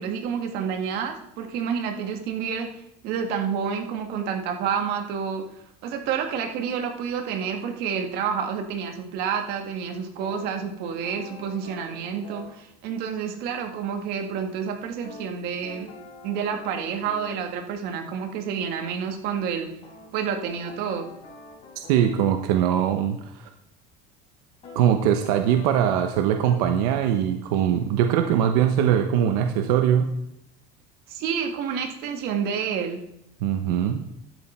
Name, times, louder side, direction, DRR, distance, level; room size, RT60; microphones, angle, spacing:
voice 1, 0.0-2.7 3.0-5.5 5.8-15.9 16.2-19.7 20.1-21.1 31.1-33.0, right 7 dB, 60° right, 4 dB, 1.8 m, -29 dB
sound 1, 10.2-12.6 15.0-17.4 19.8-22.2 24.6-24.9 25.2-26.7, left 2 dB, 30° left, 4.5 m, -45 dB
voice 2, 21.9-23.5 24.7-30.1 33.4-34.0, right 9 dB, 85° right, 6 dB, 0.9 m, -22 dB
12.0 x 8.0 x 4.3 m, 0.78 s
cardioid pair, 145°, 19 cm